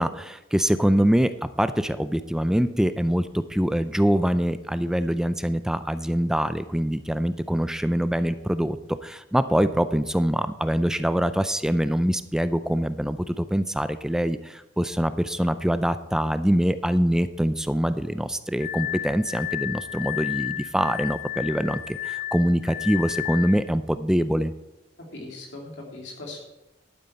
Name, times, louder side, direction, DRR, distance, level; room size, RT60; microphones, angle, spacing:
voice 1, 0.0-8.8 9.0-24.5, equal, 5° right, 12 dB, 0.4 m, -24 dB
Glass, 18.6-23.6, left 13 dB, 60° left, 1.7 m, -32 dB
voice 2, 25.0-26.4, left 2 dB, 80° left, 0 dB, 2.7 m, -39 dB
11.5 x 9.2 x 4.3 m, 0.98 s
head